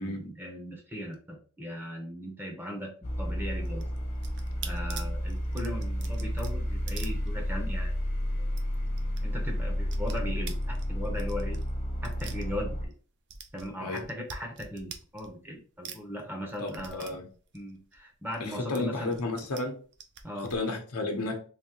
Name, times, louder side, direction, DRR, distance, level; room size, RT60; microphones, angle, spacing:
voice 1, 0.0-2.9 3.2-3.9 4.6-8.0 8.4-8.5 9.2-11.6 12.0-12.9 13.5-17.1 17.5-19.2 20.2-20.5, equal, 10° right, 0.7 m, -38 dB
sound 1, 3.0-12.9, equal, 30° left, 0.6 m, -31 dB
sound 2, 3.6-7.8 8.1-8.2 8.5-9.2 9.5-13.0 13.3-15.6 15.8-18.4 18.7-19.6 19.9-20.6, right 5 dB, 50° right, 0.5 m, -45 dB
voice 2, 16.6-17.2 18.4-19.8 20.4-21.4, left 2 dB, 90° left, 0.8 m, -32 dB
3.6 x 2.7 x 2.8 m
head